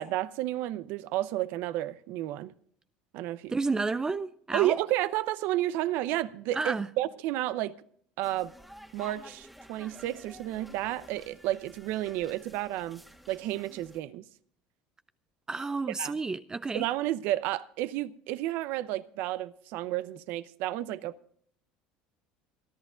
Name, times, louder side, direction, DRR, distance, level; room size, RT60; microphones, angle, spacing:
voice 1, 0.0-2.5 3.1-3.5 4.5-7.8 8.2-8.5 8.9-13.0 13.3-14.2 16.0-16.1 16.7-21.1, right 15 dB, 70° right, 0.7 m, -31 dB
voice 2, 3.5-4.8 6.5-6.9 15.5-16.9, right 3 dB, 20° right, 0.5 m, -31 dB
sound 1, 8.2-14.0, equal, 5° right, 1.6 m, -51 dB
28.0 x 11.0 x 2.5 m
supercardioid pair, 95°, 4 cm